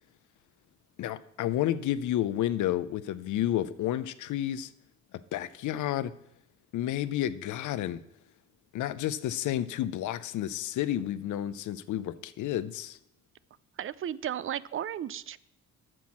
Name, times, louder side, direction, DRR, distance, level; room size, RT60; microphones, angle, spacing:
voice 1, 1.0-4.7 5.3-6.1 6.7-8.0 8.7-13.0, left 12 dB, 75° left, 16 dB, 0.6 m, -31 dB
voice 2, 13.8-15.4, right 10 dB, 45° right, 19 dB, 0.4 m, -34 dB
9.1 x 6.1 x 7.2 m, 0.79 s
cardioid pair, 90°, 30 cm